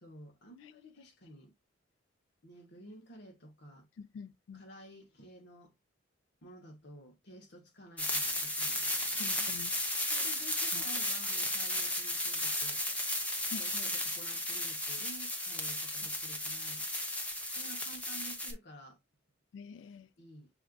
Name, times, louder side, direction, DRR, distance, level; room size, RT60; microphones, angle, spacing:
voice 1, 0.0-1.5 2.4-3.9 4.5-5.7 6.4-9.5 10.1-12.8 13.5-16.9 17.6-19.0 20.2-20.5, right 1 dB, 60° left, 1.1 m, -52 dB
voice 2, 4.0-4.6 9.1-9.8 10.7-10.8 13.5-13.9 15.8-15.9 17.6-17.7 19.5-20.1, left 6 dB, 80° left, 0.3 m, -47 dB
sound 1, 8.0-18.5, left 1 dB, 10° left, 0.6 m, -34 dB
6.2 x 2.5 x 2.2 m
head